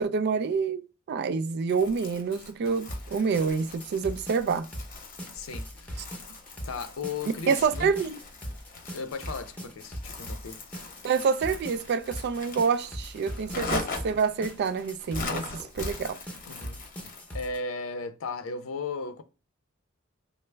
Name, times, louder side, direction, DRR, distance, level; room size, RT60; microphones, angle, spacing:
voice 1, 0.0-4.7 7.5-8.2 11.0-15.5 15.7-16.2, right 5 dB, 55° right, 0.3 m, -27 dB
Crumpling crinkling, 1.7-17.5, left 3 dB, 45° left, 0.8 m, -41 dB
sound 1, 2.9-17.6, equal, 10° left, 0.7 m, -40 dB
voice 2, 5.3-6.2 6.6-7.9 8.9-10.6 16.5-16.8 17.3-19.2, left 4 dB, 75° left, 0.5 m, -36 dB
3.2 x 2.0 x 3.2 m
head